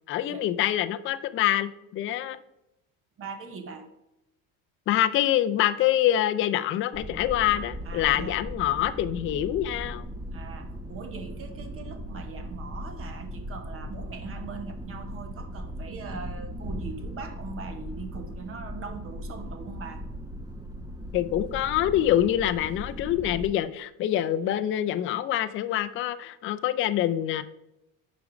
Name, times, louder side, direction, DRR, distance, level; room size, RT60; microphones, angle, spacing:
voice 1, 0.1-2.4 4.9-10.1 21.1-27.4, left 12 dB, 35° left, 10 dB, 0.4 m, -25 dB
voice 2, 3.2-3.9 7.5-8.4 10.3-20.1, right 4 dB, 35° right, 8 dB, 1.0 m, -41 dB
sound 1, 6.9-23.5, equal, 10° right, 0.7 m, -38 dB
6.4 x 5.1 x 5.1 m, 0.87 s
cardioid pair, 140°, 39 cm